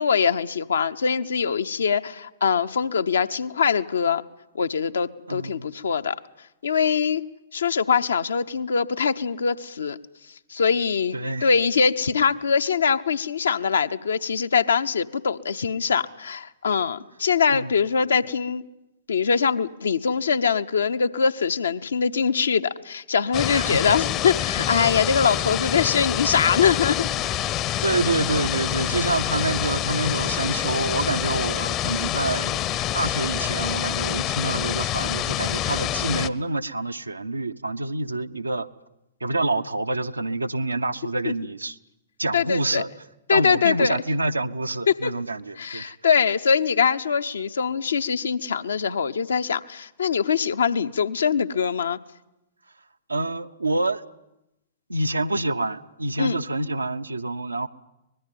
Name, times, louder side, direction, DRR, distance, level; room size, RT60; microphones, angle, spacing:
voice 1, 0.0-4.2 4.5-6.2 6.6-7.2 7.5-10.0 10.5-11.2 11.4-18.6 19.1-27.0 41.3-41.4 42.3-42.8 43.3-44.0 44.9-45.1 45.6-52.0 56.2-56.4, left 6 dB, 65° left, 10 dB, 0.9 m, -23 dB
voice 2, 5.3-5.7 11.1-11.5 17.5-17.7 23.5-24.0 24.6-24.7 27.8-32.7 32.9-38.7 39.2-41.8 42.2-42.9 43.3-45.9 53.1-54.0 54.9-57.7, right 2 dB, 80° right, 10 dB, 0.8 m, -27 dB
sound 1, 23.3-36.3, left 12 dB, 30° left, 0.8 m, -26 dB
24.0 x 20.5 x 9.3 m, 0.90 s
figure-of-eight pair, 105°, 0 cm